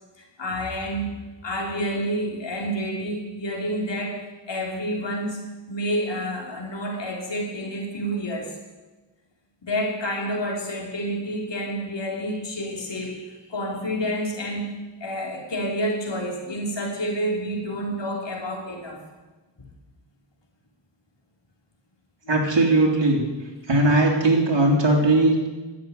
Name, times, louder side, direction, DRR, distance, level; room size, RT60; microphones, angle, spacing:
voice 1, 0.2-5.4 5.7-8.6 9.6-14.7 15.0-19.0, equal, 70° left, 0 dB, 3.4 m, -29 dB
voice 2, 22.3-23.2 23.7-25.5, right 2 dB, 70° right, -1 dB, 3.4 m, -19 dB
12.0 x 8.4 x 9.3 m, 1.2 s
wide cardioid pair, 60°, 44 cm